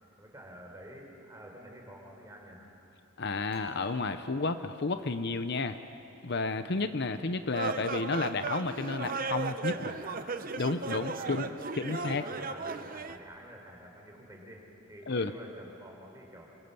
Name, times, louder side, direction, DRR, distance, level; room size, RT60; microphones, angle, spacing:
voice 1, 0.2-2.7 9.7-10.3 10.8-11.6 11.9-16.5, right 1 dB, 15° right, 0 dB, 4.5 m, -49 dB
voice 2, 3.2-5.8 6.2-9.9 10.6-11.5 11.8-12.2 15.1-15.3, left 3 dB, 55° left, 10 dB, 0.8 m, -31 dB
Dishes pots and pans / Chink clink, 3.5-5.6, right 3 dB, 5° left, 3.6 m, -55 dB
sound 1, 7.5-13.2, right 4 dB, 45° right, 0.9 m, -36 dB
27.0 x 24.5 x 7.0 m, 2.8 s
head